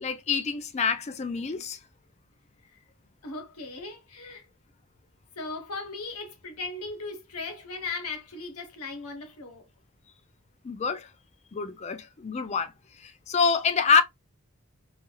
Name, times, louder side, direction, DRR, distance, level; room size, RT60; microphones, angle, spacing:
voice 1, 0.0-1.8 10.6-11.1 11.5-12.7 13.0-14.0, left 5 dB, 30° left, 0.3 m, -26 dB
voice 2, 3.2-4.4 5.4-9.7, left 3 dB, 85° left, 0.9 m, -37 dB
3.1 x 2.4 x 2.3 m
head